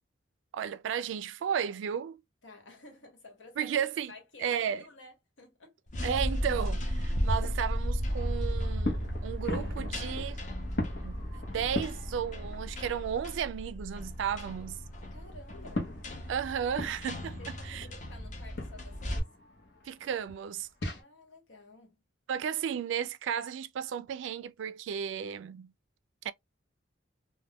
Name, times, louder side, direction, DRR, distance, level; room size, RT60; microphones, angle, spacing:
voice 1, 0.5-2.2 3.6-4.1 4.4-4.8 6.0-10.4 11.0-11.2 11.5-14.8 16.3-17.4 17.7-17.9 19.8-20.7 22.3-25.7 26.2-26.3, right 8 dB, 75° right, 0.3 m, -34 dB
voice 2, 2.4-3.8 4.1-5.8 15.1-15.9 17.4-19.3 20.9-22.0, left 2 dB, 90° left, 1.2 m, -52 dB
sound 1, 5.9-19.2, equal, 40° left, 0.6 m, -35 dB
sound 2, 6.3-13.2 13.5-21.0, left 2 dB, 65° left, 0.8 m, -41 dB
3.4 x 2.2 x 2.2 m
head